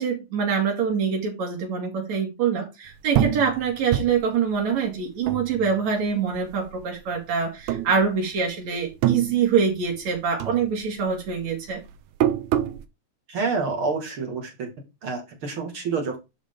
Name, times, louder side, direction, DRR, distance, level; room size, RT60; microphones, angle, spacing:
voice 1, 0.0-11.8, right 6 dB, 65° right, 3.7 m, -25 dB
sound 1, 3.1-6.0 6.3-7.2 7.6-8.5 8.8-10.1 10.4-12.8, right 11 dB, 85° right, 2.3 m, -26 dB
voice 2, 13.3-14.5 15.0-16.2, right 4 dB, 45° right, 2.6 m, -27 dB
11.0 x 5.1 x 3.7 m
omnidirectional pair, 3.4 m